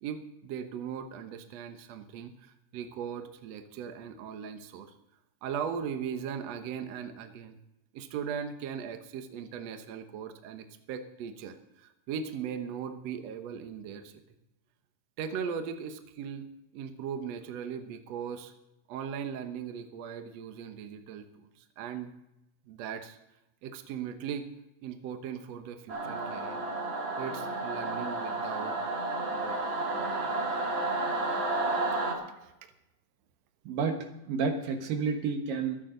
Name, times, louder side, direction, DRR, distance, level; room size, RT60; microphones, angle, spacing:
voice 1, 0.0-4.9 5.4-7.6 7.9-14.1 15.2-16.5 16.7-18.5 18.9-21.5 21.8-22.1 22.7-23.2 23.6-24.5 24.8-26.6 27.2-28.8 29.3-29.6 29.9-30.3 32.4-32.5, right 7 dB, 65° right, 7 dB, 1.9 m, -38 dB
Singing / Musical instrument, 25.9-32.1, right 2 dB, 40° right, 2.7 m, -31 dB
voice 2, 33.6-35.8, right 5 dB, 85° right, 5 dB, 3.2 m, -30 dB
23.5 x 8.9 x 3.9 m, 0.90 s
omnidirectional pair, 3.9 m